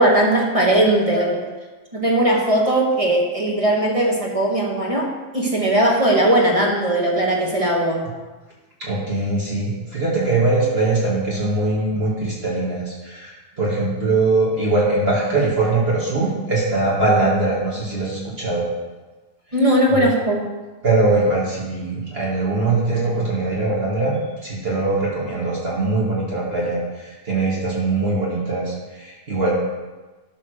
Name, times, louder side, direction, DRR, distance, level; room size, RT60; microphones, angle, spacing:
voice 1, 0.0-1.4 1.9-8.0 19.5-20.5, right 1 dB, 25° right, -2 dB, 1.5 m, -18 dB
voice 2, 8.8-18.7 20.0-20.1 20.8-29.5, right 2 dB, 50° right, -6 dB, 2.3 m, -21 dB
12.5 x 4.3 x 6.4 m, 1.2 s
omnidirectional pair, 1.3 m